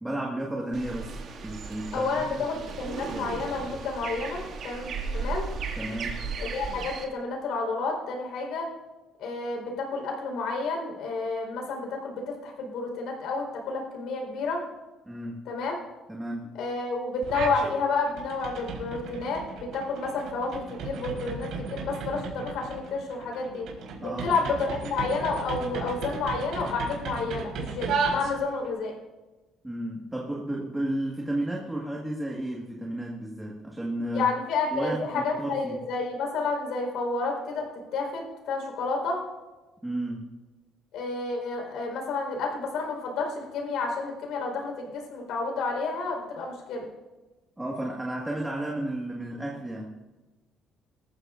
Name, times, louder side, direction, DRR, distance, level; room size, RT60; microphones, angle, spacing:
voice 1, 0.0-1.2 1.4-2.3 5.8-6.2 15.1-15.4 16.1-16.5 24.0-24.3 29.6-34.3 34.7-35.8 39.8-40.3 47.6-50.0, right 1 dB, 10° right, -2 dB, 1.8 m, -32 dB
sound 1, 0.7-7.0, right 4 dB, 55° right, 2.3 m, -35 dB
voice 2, 1.9-5.5 6.4-8.7 9.2-14.7 15.5-15.8 16.5-23.7 24.0-28.9 34.1-39.2 40.9-46.9, left 3 dB, 75° left, 2 dB, 4.5 m, -30 dB
sound 2, 17.2-17.7 18.1-28.7, right 4 dB, 75° right, 4.2 m, -35 dB
20.5 x 14.5 x 2.6 m, 1.2 s
cardioid pair, 125°, 0 cm